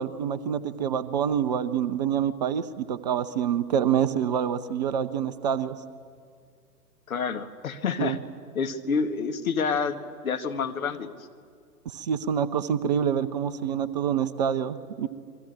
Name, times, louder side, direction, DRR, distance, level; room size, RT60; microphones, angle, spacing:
voice 1, 0.0-5.8 8.0-8.2 11.9-15.1, right 8 dB, 25° right, 11 dB, 0.7 m, -26 dB
voice 2, 7.1-8.2 8.6-11.1, left 5 dB, 60° left, 7 dB, 2.1 m, -28 dB
28.5 x 22.5 x 8.8 m, 2.1 s
figure-of-eight pair, 125°, 48 cm